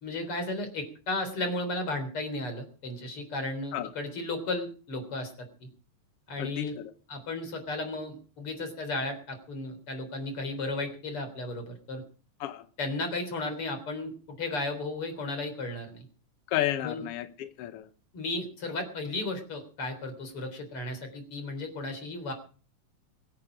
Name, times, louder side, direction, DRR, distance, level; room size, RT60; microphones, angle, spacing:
voice 1, 0.0-5.3 5.6-5.7 6.3-6.7 7.1-12.0 12.8-14.1 14.4-16.1 16.8-17.0 18.1-22.3, left 2 dB, 45° left, 4.4 m, -34 dB
voice 2, 6.4-6.9 12.4-12.7 16.5-17.9, left 13 dB, 70° left, 1.5 m, -32 dB
23.0 x 10.0 x 5.0 m
omnidirectional pair, 3.5 m